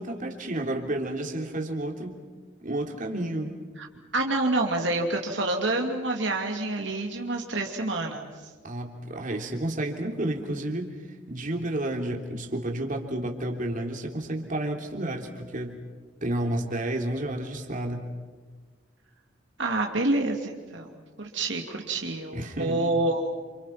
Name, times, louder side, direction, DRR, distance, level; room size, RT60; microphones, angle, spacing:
voice 1, 0.0-2.2 2.6-3.6 8.6-15.8 16.2-18.1 22.3-22.8, right 1 dB, 45° right, 2 dB, 3.3 m, -31 dB
voice 2, 4.1-8.3 19.6-23.2, right 2 dB, 75° right, 1 dB, 2.8 m, -27 dB
29.0 x 28.5 x 5.9 m, 1.4 s
head